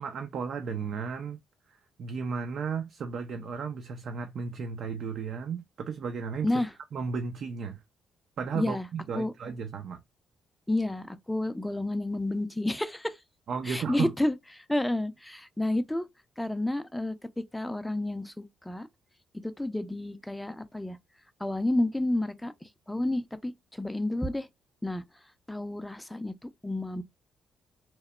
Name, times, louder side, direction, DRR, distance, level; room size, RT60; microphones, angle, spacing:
voice 1, 0.0-1.4 2.0-6.5 6.9-7.8 8.4-10.0 13.5-14.1, right 5 dB, 60° right, 0.4 m, -34 dB
voice 2, 8.5-8.9 9.1-9.3 10.7-13.2 13.6-16.0 16.4-17.2 17.5-18.9 19.4-21.0 21.4-24.5 24.8-25.0 25.5-26.3 26.6-27.0, left 1 dB, 5° left, 0.4 m, -30 dB
2.9 x 2.0 x 2.3 m
cardioid pair, 90°, 0 cm